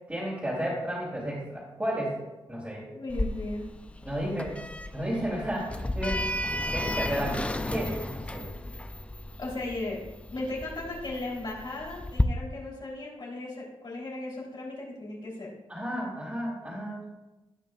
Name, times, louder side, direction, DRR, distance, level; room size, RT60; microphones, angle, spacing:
voice 1, 0.0-2.2 2.5-2.8 4.0-4.6 4.9-6.2 6.7-8.5 15.7-17.1, equal, 15° right, -8 dB, 2.8 m, -32 dB
voice 2, 2.9-3.6 9.4-10.0 10.3-15.5, left 2 dB, 50° left, -4 dB, 3.2 m, -36 dB
Sliding door, 3.1-12.2, left 1 dB, 15° left, 0.4 m, -33 dB
17.5 x 5.8 x 2.4 m, 1.1 s
wide cardioid pair, 105°, 10 cm